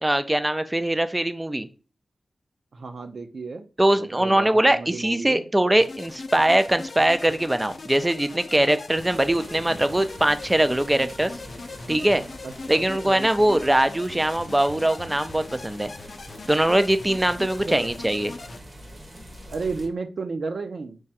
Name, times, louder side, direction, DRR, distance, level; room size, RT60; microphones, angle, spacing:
voice 1, 0.0-1.7 3.8-11.3 11.9-12.2 12.7-15.9 16.5-18.4, right 1 dB, 15° right, 11 dB, 0.4 m, -22 dB
voice 2, 2.7-3.6 3.9-5.5 12.4-13.3 17.6-17.9 19.5-21.0, right 4 dB, 70° right, 8 dB, 0.6 m, -33 dB
sound 1, 5.8-18.6, left 3 dB, 60° left, 0.5 m, -40 dB
sound 2, 8.9-19.9, equal, 40° right, 1.2 m, -44 dB
4.7 x 2.2 x 4.1 m, 0.35 s
wide cardioid pair, 125°, 0 cm